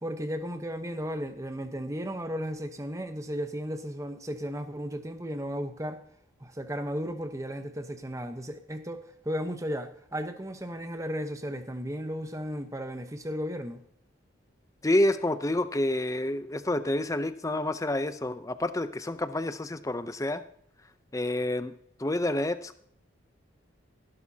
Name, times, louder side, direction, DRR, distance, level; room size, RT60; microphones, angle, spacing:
voice 1, 0.0-6.0 6.4-13.8, equal, 15° right, 0.9 m, -35 dB
voice 2, 14.8-20.4 21.1-21.7 22.0-22.7, left 1 dB, 15° left, 0.6 m, -28 dB
15.5 x 12.0 x 2.8 m
head